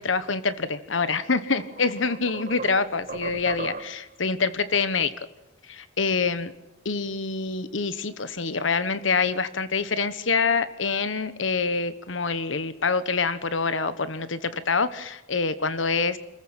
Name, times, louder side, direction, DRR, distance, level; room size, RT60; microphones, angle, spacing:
voice 1, 0.0-5.1 5.7-6.5 6.8-16.2, left 4 dB, 75° left, 13 dB, 1.3 m, -26 dB
sound 1, 1.1-1.2 1.6-4.2, right 3 dB, 45° right, 1.6 m, -37 dB
27.5 x 15.0 x 9.0 m, 0.96 s
head